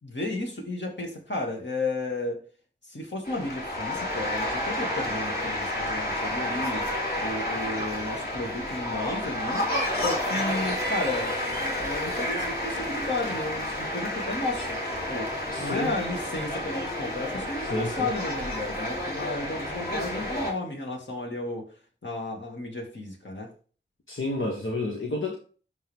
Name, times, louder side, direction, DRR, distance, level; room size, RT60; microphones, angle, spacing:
voice 1, 0.0-2.4 2.9-6.9 7.2-9.7 9.9-14.8 15.1-21.7 22.0-23.5, left 2 dB, 65° left, 0 dB, 2.4 m, -33 dB
sound 1, 3.2-20.5, left 1 dB, 50° left, 3.0 m, -30 dB
voice 2, 15.5-15.9 17.7-18.1 24.1-25.4, left 2 dB, 85° left, -2 dB, 1.5 m, -30 dB
12.0 x 4.0 x 3.6 m, 0.39 s
wide cardioid pair, 55°, 20 cm